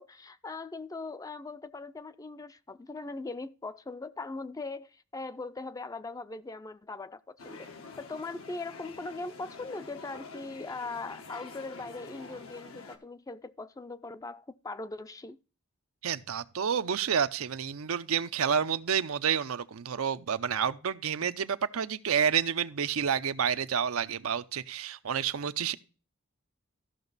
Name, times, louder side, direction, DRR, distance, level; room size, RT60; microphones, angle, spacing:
voice 1, 0.0-7.7 8.0-15.4, left 3 dB, 15° left, 0.4 m, -40 dB
sound 1, 7.4-13.0, left 4 dB, 90° left, 1.3 m, -47 dB
voice 2, 16.0-25.7, right 7 dB, 90° right, 0.6 m, -29 dB
14.0 x 5.9 x 4.0 m
head